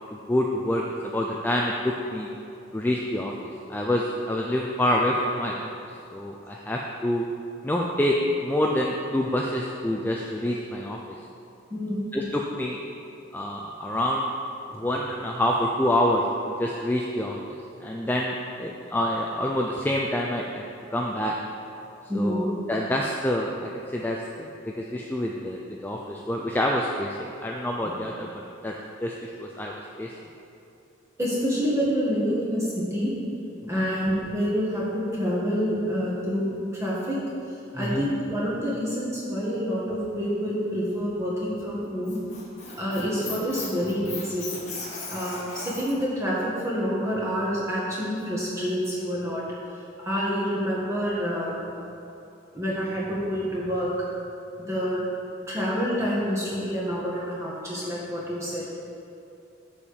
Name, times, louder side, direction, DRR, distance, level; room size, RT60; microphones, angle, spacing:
voice 1, 0.1-2.3 2.7-5.7 6.1-7.2 7.6-11.2 12.1-12.8 13.3-14.3 14.7-20.6 20.9-21.3 22.1-28.7 29.0-30.1 33.6-33.7 37.7-38.1 43.0-43.1, left 1 dB, 10° left, -1 dB, 0.4 m, -27 dB
voice 2, 11.7-12.1 14.7-14.8 22.1-22.5 31.2-33.1 33.7-37.2 37.7-42.2 42.8-44.5 45.1-49.4 50.0-51.5 52.5-53.9 54.6-55.0 55.5-58.8, equal, 15° right, -6 dB, 1.7 m, -27 dB
Squeak, 41.8-46.0, left 4 dB, 35° left, 1.4 m, -37 dB
7.0 x 5.0 x 7.1 m, 2.7 s
head